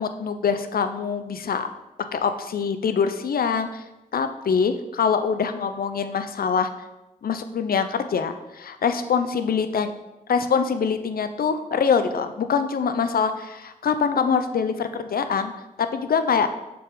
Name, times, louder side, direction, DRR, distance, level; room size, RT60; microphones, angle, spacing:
voice 1, 0.0-1.7 2.1-3.8 4.1-6.7 7.2-9.9 10.3-15.5 15.8-16.5, left 6 dB, 75° left, 9 dB, 0.6 m, -24 dB
6.9 x 5.9 x 3.8 m, 0.98 s
cardioid pair, 70°, 15 cm